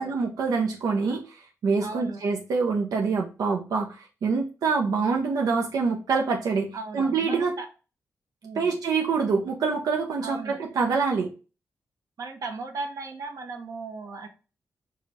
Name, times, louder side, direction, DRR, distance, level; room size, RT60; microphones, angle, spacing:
voice 1, 0.0-7.5 8.5-11.3, right 4 dB, 85° right, 0 dB, 0.7 m, -26 dB
voice 2, 1.8-2.2 6.7-7.7 8.4-8.8 10.2-10.6 12.2-14.3, right 3 dB, 60° right, 4 dB, 1.1 m, -36 dB
4.9 x 2.4 x 4.1 m, 0.33 s
wide cardioid pair, 135°, 6 cm